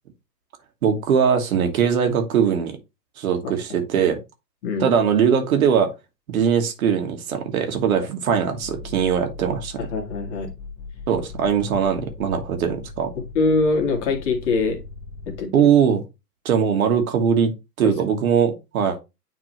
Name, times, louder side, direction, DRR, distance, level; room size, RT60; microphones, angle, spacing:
voice 1, 0.8-2.8 3.2-4.2 4.8-5.9 6.3-9.8 11.1-13.1 15.5-16.0 16.4-17.5 17.8-19.0, right 7 dB, 55° right, 1.6 m, -20 dB
sound 1, 8.6-15.4, left 4 dB, 15° left, 1.1 m, -39 dB
voice 2, 9.8-10.5 13.1-14.8 15.3-15.7 17.8-18.0, left 3 dB, 45° left, 2.0 m, -23 dB
9.3 x 3.4 x 3.1 m
hypercardioid pair, 125°, 50 cm